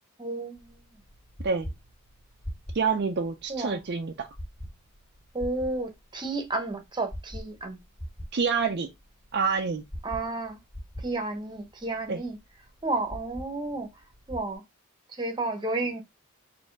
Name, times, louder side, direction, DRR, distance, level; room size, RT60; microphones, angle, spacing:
voice 1, 0.2-0.9 3.5-3.8 5.3-7.8 10.0-10.6 11.0-12.4 12.8-13.9 14.3-14.6 15.1-16.0, right 2 dB, 20° right, 0.9 m, -31 dB
sound 1, 0.6-14.5, equal, 20° left, 2.1 m, -43 dB
voice 2, 2.7-4.3 8.3-8.9 9.3-9.8 12.1-12.2, right 5 dB, 50° right, 0.5 m, -27 dB
4.3 x 2.7 x 4.5 m
head